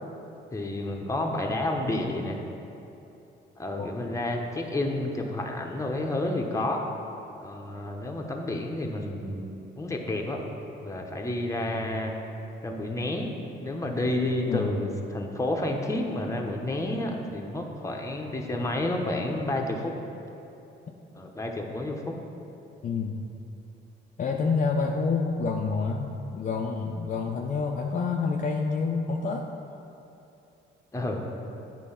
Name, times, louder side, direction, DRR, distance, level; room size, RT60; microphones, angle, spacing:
voice 1, 0.5-2.4 3.6-6.8 7.4-10.4 10.8-12.1 12.6-13.3 13.6-19.9 21.2-22.1 30.9-31.3, left 1 dB, 15° left, 1 dB, 0.9 m, -30 dB
voice 2, 22.8-23.3 24.2-29.5, left 4 dB, 40° left, 0 dB, 0.5 m, -28 dB
8.5 x 4.1 x 5.6 m, 2.9 s
cardioid pair, 90°, 20 cm